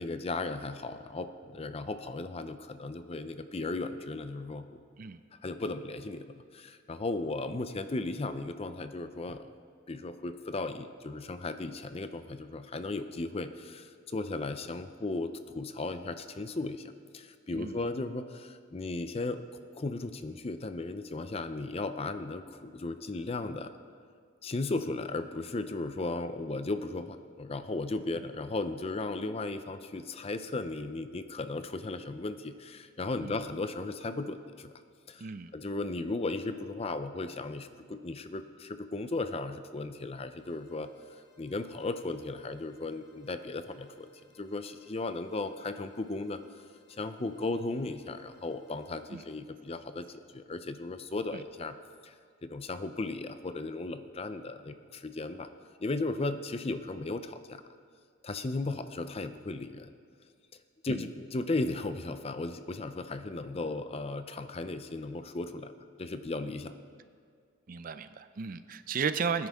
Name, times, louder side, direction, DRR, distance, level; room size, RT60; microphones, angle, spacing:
voice 1, 0.0-4.8 5.3-9.5 9.9-23.7 24.4-34.7 35.1-35.3 35.5-44.1 44.3-46.6 46.9-51.8 52.0-52.1 52.4-55.5 55.8-57.6 58.2-59.9 60.8-65.7 66.0-66.7, left 2 dB, 30° left, 10 dB, 0.5 m, -36 dB
voice 2, 35.2-35.5 49.1-49.2 51.3-51.4 60.9-61.1 67.7-69.5, right 6 dB, 45° right, 12 dB, 0.4 m, -34 dB
sound 1, 40.3-49.3, left 4 dB, 55° left, 3.9 m, -67 dB
20.0 x 9.8 x 3.5 m, 2.1 s
head